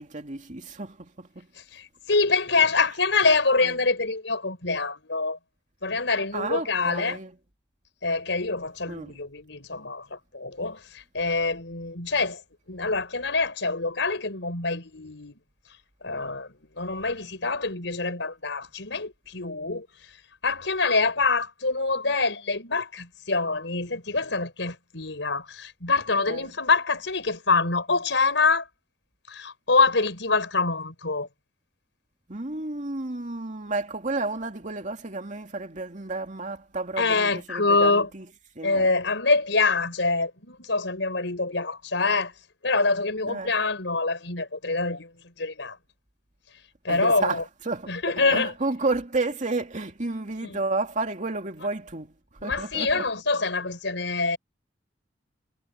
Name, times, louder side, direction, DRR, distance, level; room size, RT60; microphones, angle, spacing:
voice 1, 0.0-1.5 3.6-3.7 6.3-7.3 8.9-9.1 26.3-26.5 32.3-38.2 38.6-38.9 43.3-43.5 46.9-47.9 48.3-52.1 52.4-53.1, right 3 dB, 45° right, 2.5 m, -31 dB
voice 2, 1.7-5.4 5.8-7.2 8.0-12.4 12.7-15.4 16.0-20.1 20.4-28.7 29.3-31.3 37.0-38.1 38.6-42.3 42.6-45.8 46.8-47.4 47.9-48.5 50.4-50.6 52.4-54.4, left 3 dB, 80° left, 5.5 m, -25 dB
head